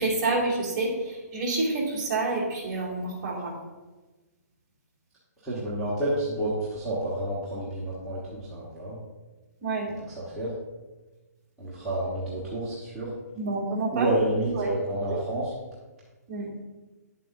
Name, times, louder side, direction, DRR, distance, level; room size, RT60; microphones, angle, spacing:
voice 1, 0.0-3.5 9.6-9.9 13.3-14.1 14.5-14.7 15.1-15.2 16.3-16.5, right 3 dB, 25° right, -6 dB, 2.4 m, -28 dB
voice 2, 5.4-9.0 10.2-10.5 11.6-13.1 13.9-15.5, right 1 dB, 5° right, -12 dB, 1.2 m, -29 dB
10.0 x 7.7 x 2.6 m, 1.2 s
hypercardioid pair, 170°, 9 cm